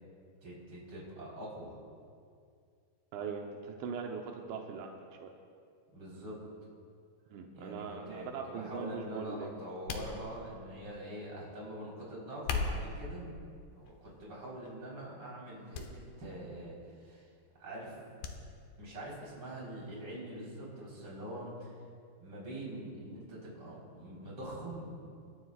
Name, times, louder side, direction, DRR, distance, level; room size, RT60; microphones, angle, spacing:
voice 1, 0.4-1.8 5.9-6.4 7.5-13.3 13.7-17.3 17.6-17.9 18.8-21.7 22.2-24.9, right 1 dB, 30° right, -5 dB, 4.5 m, -44 dB
voice 2, 3.1-5.3 7.3-9.5, right 6 dB, 85° right, 2 dB, 3.1 m, -41 dB
sound 1, 9.9-10.7 12.3-13.0 13.8-14.2 14.6-14.7 15.7-15.9 16.2-16.3 18.2-18.4 18.7-18.8, left 4 dB, 70° left, 2.4 m, -36 dB
27.5 x 12.5 x 2.4 m, 2.3 s
omnidirectional pair, 5.0 m